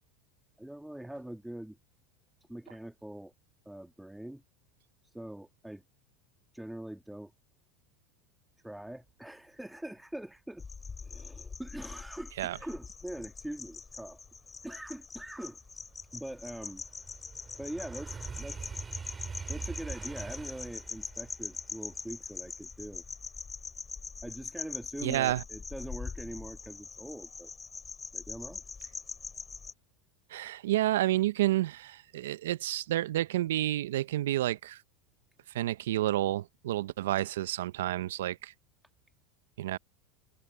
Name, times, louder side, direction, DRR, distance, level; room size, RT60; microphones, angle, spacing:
voice 1, 0.6-1.8 2.5-3.3 3.7-4.4 5.0-5.8 6.5-7.3 8.6-10.6 11.0-14.2 14.6-15.6 16.1-16.8 17.6-18.8 19.5-23.0 24.2-27.5 28.1-28.6, right 1 dB, 5° right, 2.1 m, -43 dB
sound 1, 10.6-29.7, left 5 dB, 20° left, 4.0 m, -43 dB
sound 2, 14.2-14.3 14.8-23.8 24.2-24.6, right 5 dB, 20° right, 2.8 m, -44 dB
voice 2, 25.0-25.4 30.3-34.8 35.5-38.5 39.6-39.8, right 14 dB, 75° right, 0.8 m, -30 dB
hypercardioid pair, 90°, 0 cm